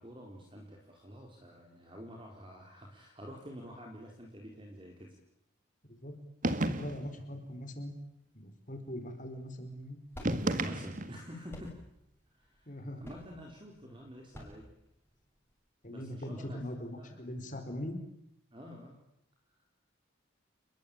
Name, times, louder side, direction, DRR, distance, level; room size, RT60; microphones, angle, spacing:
voice 1, 0.0-5.2 10.5-11.8 12.3-14.7 15.9-17.2 18.5-19.0, equal, 25° right, 1 dB, 4.3 m, -48 dB
sound 1, 6.4-7.2 10.2-11.3, right 1 dB, 40° right, 1.8 m, -32 dB
voice 2, 6.8-7.9 8.3-10.0 12.7-13.0 15.8-18.0, left 1 dB, 40° left, 6 dB, 4.7 m, -41 dB
sound 2, 9.3-15.5, equal, 10° left, 7.3 m, -51 dB
30.0 x 21.5 x 9.0 m, 0.81 s
head